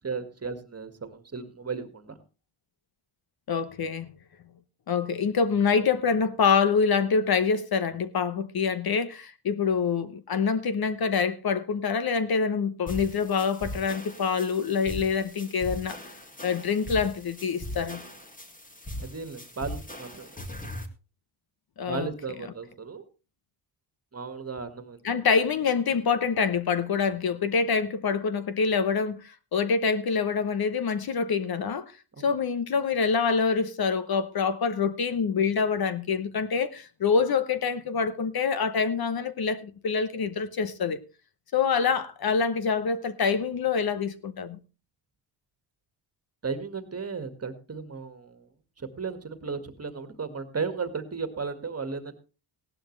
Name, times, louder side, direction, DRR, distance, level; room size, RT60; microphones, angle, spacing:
voice 1, 0.0-2.2 19.0-20.3 21.9-23.0 24.1-25.2 32.2-32.3 46.4-48.5 48.8-52.1, right 5 dB, 30° right, 1.9 m, -35 dB
voice 2, 3.5-4.1 4.9-16.1 16.4-18.0 21.8-22.1 25.0-31.9 32.2-41.0 41.5-44.6, left 5 dB, 50° left, 1.0 m, -26 dB
sound 1, 12.9-20.9, left 1 dB, 15° left, 2.0 m, -40 dB
16.5 x 11.5 x 3.2 m
cardioid pair, 80°, 48 cm